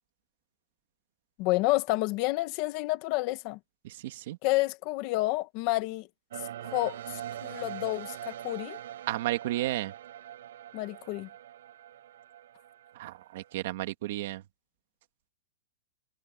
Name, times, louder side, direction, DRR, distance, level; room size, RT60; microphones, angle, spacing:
voice 1, 1.4-3.6 4.4-6.1 6.6-7.0 7.4-8.8 10.7-11.3, left 20 dB, 30° left, 1.5 m, -29 dB
voice 2, 3.8-4.4 9.1-9.9 13.0-14.4, right 16 dB, 45° right, 2.1 m, -33 dB
sound 1, 6.3-13.5, right 11 dB, 65° right, 7.1 m, -43 dB
supercardioid pair, 170°, 0 cm